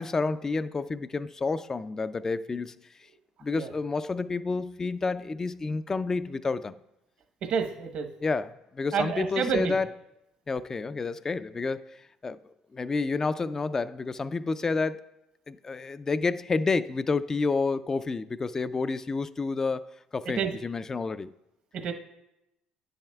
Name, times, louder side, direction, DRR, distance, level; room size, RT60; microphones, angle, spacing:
voice 1, 0.0-2.8 3.4-6.7 8.2-9.9 10.5-15.1 15.5-21.3, left 4 dB, 25° left, 0.3 m, -30 dB
voice 2, 7.4-8.1 8.9-9.8 20.3-20.5 21.7-21.9, right 6 dB, 60° right, 1.0 m, -28 dB
10.0 x 8.8 x 2.3 m
supercardioid pair, 75°, 2 cm